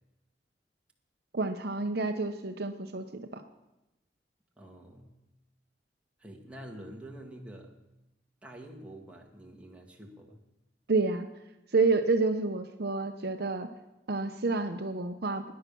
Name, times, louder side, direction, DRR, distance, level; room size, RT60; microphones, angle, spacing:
voice 1, 1.3-3.4 10.9-11.3 11.7-13.7 14.1-15.4, right 3 dB, 60° right, 7 dB, 0.9 m, -29 dB
voice 2, 4.6-5.1 6.2-7.8 8.4-10.4, right 1 dB, 5° right, 0 dB, 2.0 m, -47 dB
16.0 x 10.5 x 6.9 m, 0.96 s
head